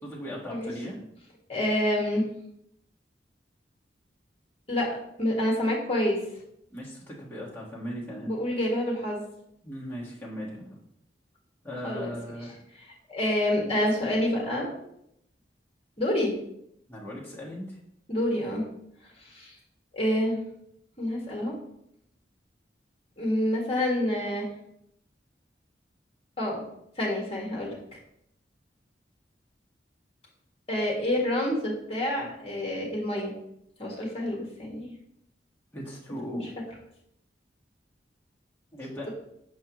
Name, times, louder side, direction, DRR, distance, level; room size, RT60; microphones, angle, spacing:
voice 1, 0.0-1.0 6.7-8.3 9.6-10.8 11.6-12.6 13.9-14.1 16.9-17.8 35.7-36.6 38.7-39.1, equal, 15° left, -5 dB, 1.4 m, -38 dB
voice 2, 1.5-2.3 4.7-4.9 5.2-6.2 8.2-9.3 11.8-12.1 13.1-14.7 16.0-16.3 18.1-18.6 19.2-19.5 19.9-20.4 21.0-21.5 23.2-24.5 26.4-26.6 27.0-28.0 30.7-33.3 33.8-34.9, left 1 dB, 35° left, -2 dB, 1.6 m, -27 dB
6.1 x 5.5 x 2.9 m, 0.75 s
head